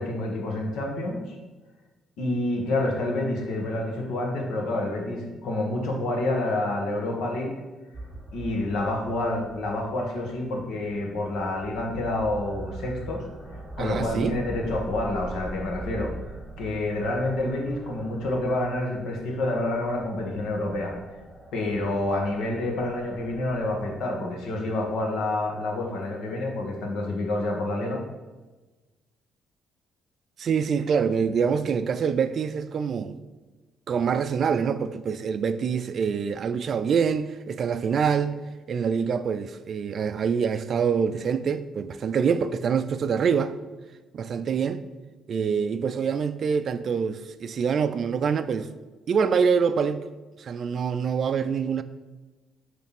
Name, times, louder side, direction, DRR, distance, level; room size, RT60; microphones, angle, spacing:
voice 1, 0.0-1.4 2.2-7.5 8.3-13.2 13.8-16.1 16.6-20.9 21.5-28.0, left 2 dB, 70° left, 1.5 m, -28 dB
sound 1, 7.9-24.2, right 1 dB, 10° right, 1.9 m, -42 dB
voice 2, 13.8-14.4 30.4-33.2 33.9-38.4 38.7-43.5 44.1-44.8 45.3-48.7 49.1-50.0 50.4-51.8, right 6 dB, 45° right, 0.3 m, -25 dB
7.1 x 3.3 x 5.9 m
cardioid pair, 130°, 0 cm